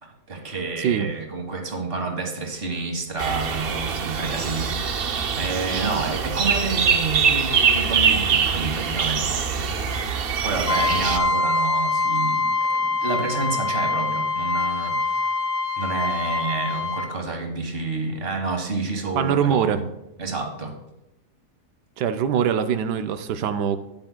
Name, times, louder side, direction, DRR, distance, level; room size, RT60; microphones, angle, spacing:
voice 1, 0.0-9.7 10.4-15.3 15.8-19.8 20.2-20.8, right 3 dB, 35° right, 3 dB, 1.7 m, -29 dB
voice 2, 0.8-1.1 19.1-19.8 22.0-23.8, right 8 dB, 90° right, 9 dB, 1.2 m, -23 dB
sound 1, 3.2-11.2, right 6 dB, 65° right, 0.5 m, -23 dB
Trumpet, 10.7-17.1, left 3 dB, 40° left, 2.5 m, -24 dB
12.0 x 9.8 x 2.2 m, 0.90 s
omnidirectional pair, 1.7 m